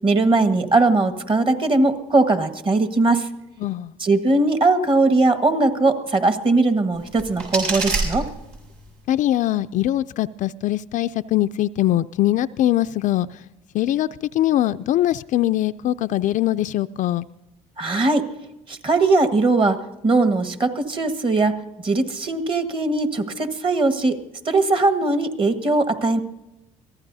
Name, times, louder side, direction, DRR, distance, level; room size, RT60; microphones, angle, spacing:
voice 1, 0.0-3.3 4.0-8.3 17.8-18.3 18.7-19.8 20.0-21.6 21.8-24.2 24.4-26.2, right 3 dB, 35° right, 9 dB, 1.6 m, -19 dB
voice 2, 3.6-3.9 9.1-13.4 13.7-17.3, left 13 dB, 60° left, 12 dB, 0.4 m, -22 dB
sound 1, 6.9-8.9, right 3 dB, 85° right, 6.0 m, -28 dB
23.0 x 15.5 x 2.7 m, 0.94 s
supercardioid pair, 80°, 15 cm